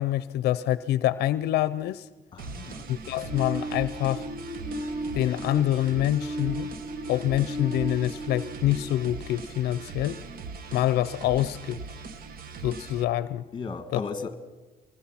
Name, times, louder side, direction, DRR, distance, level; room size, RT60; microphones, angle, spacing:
voice 1, 0.0-2.1 2.9-4.3 5.1-6.7 7.1-10.2 10.7-11.8 12.6-13.4, left 13 dB, 75° left, 16 dB, 0.6 m, -26 dB
voice 2, 2.3-2.9 13.5-14.4, left 4 dB, 25° left, 10 dB, 1.8 m, -35 dB
sound 1, 2.4-13.0, right 4 dB, 60° right, 1.4 m, -40 dB
sound 2, 3.3-10.0, right 1 dB, ahead, 4.7 m, -36 dB
24.5 x 21.5 x 5.8 m, 1.2 s
cardioid pair, 110°, 17 cm